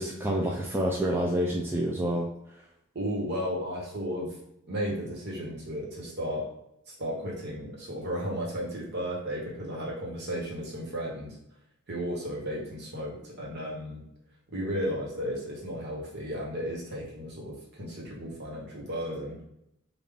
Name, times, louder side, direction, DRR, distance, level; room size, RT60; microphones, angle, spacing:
voice 1, 0.0-2.3, equal, 10° right, -2 dB, 0.3 m, -28 dB
voice 2, 2.9-4.4 4.7-6.5 6.9-11.4 11.9-14.0 14.5-19.5, equal, 50° right, -3 dB, 1.2 m, -34 dB
3.7 x 2.3 x 3.4 m, 0.81 s
head